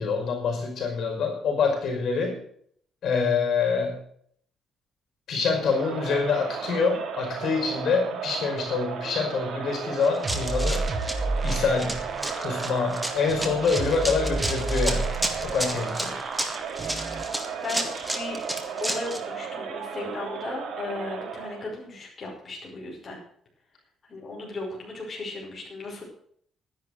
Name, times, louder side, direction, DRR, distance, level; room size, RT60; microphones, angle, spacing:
voice 1, 0.0-2.4 3.0-4.0 5.3-10.8 11.4-12.0 12.4-15.1 15.4-16.2, left 5 dB, 60° left, 2 dB, 5.4 m, -26 dB
Crowd, 5.4-21.7, right 7 dB, 65° right, 4.5 m, -35 dB
Run, 10.0-19.2, right 1 dB, 5° right, 2.0 m, -32 dB
sound 1, 10.2-17.2, right 2 dB, 30° right, 1.5 m, -31 dB
voice 2, 17.6-18.4 18.8-23.2 24.1-26.0, left 3 dB, 30° left, -2 dB, 5.4 m, -36 dB
12.0 x 10.5 x 6.5 m, 0.62 s
cardioid pair, 140°, 0 cm